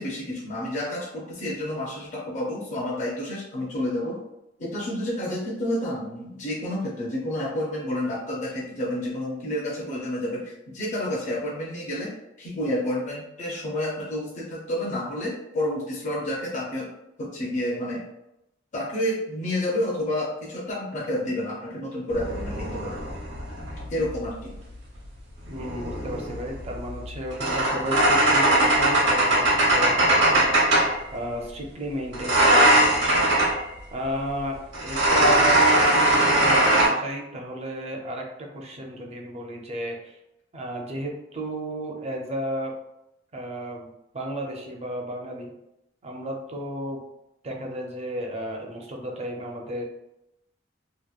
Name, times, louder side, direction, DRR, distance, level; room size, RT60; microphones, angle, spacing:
voice 1, 0.0-4.2 4.6-12.1 12.4-16.9 17.2-18.0 18.7-23.0 23.9-24.5, left 1 dB, 40° left, -5 dB, 0.5 m, -29 dB
sound 1, 22.1-24.2 25.5-31.0 32.1-33.6 34.7-36.9, right 1 dB, 70° right, 0.9 m, -20 dB
voice 2, 25.5-29.4 29.7-30.5 31.1-33.6 33.9-40.2 40.5-42.7 43.3-43.9 44.1-45.5 46.0-47.0 47.4-49.8, equal, 35° right, 0 dB, 0.5 m, -33 dB
2.8 x 2.2 x 2.3 m, 0.86 s
head